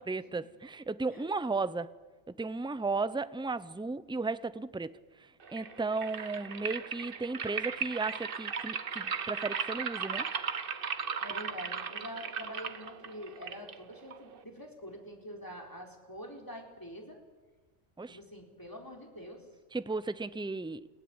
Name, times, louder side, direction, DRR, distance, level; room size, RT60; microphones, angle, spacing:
voice 1, 0.0-1.9 2.3-4.9 5.5-10.3 18.0-18.2 19.7-20.9, right 3 dB, 5° right, 14 dB, 0.5 m, -35 dB
voice 2, 1.1-1.5 11.2-17.2 18.1-19.4, equal, 15° left, 1 dB, 4.2 m, -46 dB
sound 1, 5.4-14.4, right 6 dB, 50° right, 1.2 m, -37 dB
29.0 x 17.0 x 9.8 m, 1.3 s
omnidirectional pair, 1.2 m